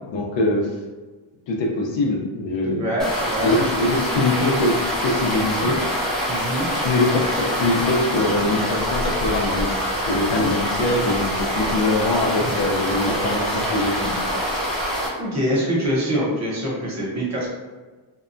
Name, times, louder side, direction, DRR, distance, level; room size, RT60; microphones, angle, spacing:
voice 1, 0.1-0.7 1.5-2.8 3.4-5.8 6.8-9.8 10.1-14.2, left 2 dB, 65° left, 0 dB, 0.6 m, -23 dB
voice 2, 2.6-3.6 6.3-6.7 15.2-17.5, equal, 35° right, -5 dB, 0.7 m, -24 dB
sound 1, 3.0-15.1, equal, ahead, 0.4 m, -25 dB
2.7 x 2.2 x 2.5 m, 1.3 s
wide cardioid pair, 145°, 49 cm